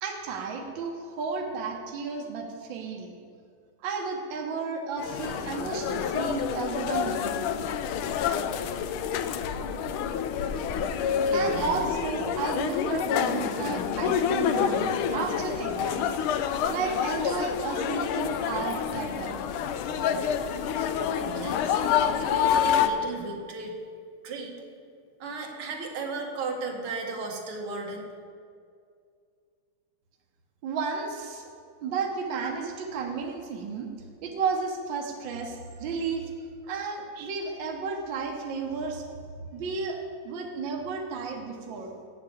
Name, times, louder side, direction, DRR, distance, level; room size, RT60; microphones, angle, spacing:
voice 1, 0.0-3.2 3.8-7.4 11.3-16.1 16.7-19.4 30.6-31.5 31.8-33.9 34.2-36.3 36.6-39.0 39.5-40.0 40.2-41.9, right 4 dB, 65° right, 2 dB, 1.6 m, -33 dB
sound 1, 5.0-22.9, left 8 dB, 80° left, 1.4 m, -28 dB
voice 2, 11.2-11.7 21.1-21.8 22.2-23.8 24.2-24.6 25.2-28.1, right 3 dB, 80° right, 1 dB, 2.2 m, -35 dB
8.2 x 6.8 x 8.3 m, 2.2 s
omnidirectional pair, 2.3 m